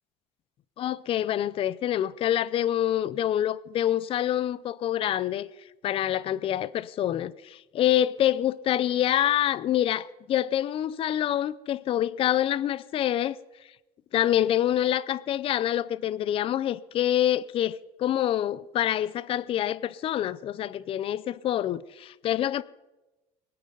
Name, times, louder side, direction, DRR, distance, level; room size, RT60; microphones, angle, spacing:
voice 1, 0.8-5.5 5.8-13.4 14.1-22.6, left 11 dB, 40° left, 0.5 m, -26 dB
22.5 x 8.6 x 3.9 m
cardioid pair, 120°, 14 cm